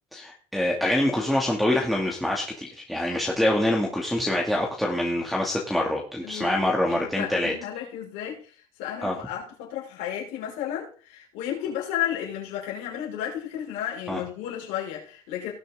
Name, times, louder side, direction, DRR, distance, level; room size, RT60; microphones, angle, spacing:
voice 1, 0.1-7.5 9.0-9.2 14.1-14.2, left 1 dB, ahead, 2.3 m, -25 dB
voice 2, 6.2-8.4 8.8-15.5, left 10 dB, 80° left, 5.4 m, -33 dB
19.0 x 6.6 x 3.7 m
supercardioid pair, 105°, 14 cm